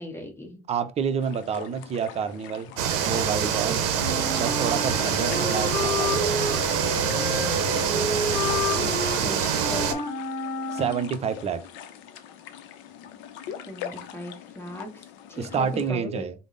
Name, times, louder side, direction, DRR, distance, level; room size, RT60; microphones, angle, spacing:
voice 1, 0.0-0.6 3.6-3.8 7.8-8.2 8.7-10.0 13.7-16.3, equal, 10° left, 1.0 m, -38 dB
voice 2, 0.7-2.7 3.0-3.8 4.3-6.3 10.7-11.6 15.4-16.3, right 6 dB, 30° right, 0.6 m, -28 dB
sound 1, 1.2-15.9, left 9 dB, 65° left, 0.6 m, -42 dB
sound 2, 2.8-9.9, right 8 dB, 80° right, 0.6 m, -25 dB
Wind instrument woodwind instrument, 4.0-11.3, left 3 dB, 45° left, 1.0 m, -30 dB
3.4 x 2.1 x 3.8 m
supercardioid pair, 95°, 20 cm